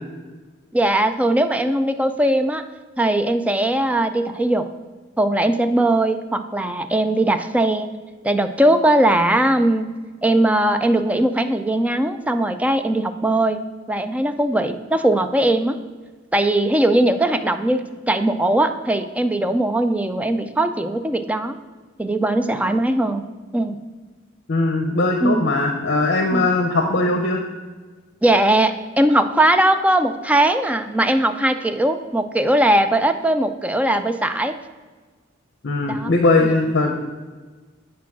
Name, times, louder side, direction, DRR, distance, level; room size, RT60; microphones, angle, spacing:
voice 1, 0.7-2.6 3.0-4.7 5.2-7.9 8.2-9.9 10.2-13.6 13.9-15.7 16.3-21.6 22.0-23.2 23.5-23.8 25.2-25.5 26.3-26.5 28.2-34.5 35.9-36.1 36.4-36.5, right 1 dB, 5° right, 8 dB, 0.4 m, -19 dB
voice 2, 24.5-27.4 35.6-36.9, left 2 dB, 60° left, 4 dB, 0.7 m, -19 dB
8.3 x 4.7 x 6.0 m, 1.4 s
head